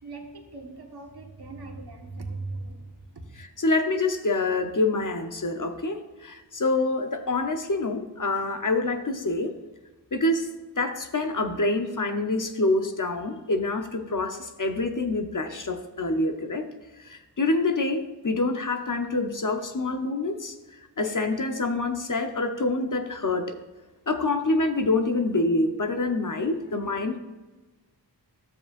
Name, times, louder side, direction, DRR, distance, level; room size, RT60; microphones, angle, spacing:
voice 1, 0.0-3.5, right 3 dB, 60° right, 2 dB, 1.5 m, -39 dB
voice 2, 3.4-9.5 10.1-16.7 17.0-20.5 21.0-23.5 24.1-27.2, left 2 dB, 45° left, 7 dB, 1.0 m, -26 dB
12.5 x 7.4 x 2.6 m, 1.2 s
wide cardioid pair, 45°, 43 cm